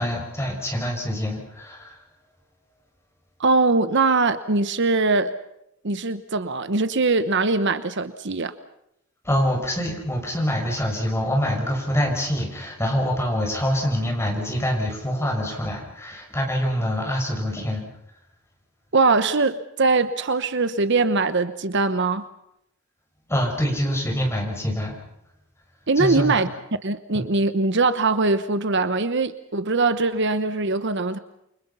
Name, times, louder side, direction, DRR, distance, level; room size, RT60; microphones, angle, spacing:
voice 1, 0.0-2.0 9.2-17.8 23.3-25.0 26.0-26.4 27.1-27.3, equal, 10° left, 1 dB, 6.3 m, -25 dB
voice 2, 3.4-5.3 5.8-8.5 18.9-22.3 25.9-26.5 26.8-31.2, right 3 dB, 55° right, 12 dB, 1.1 m, -21 dB
28.5 x 25.0 x 5.7 m, 0.80 s
head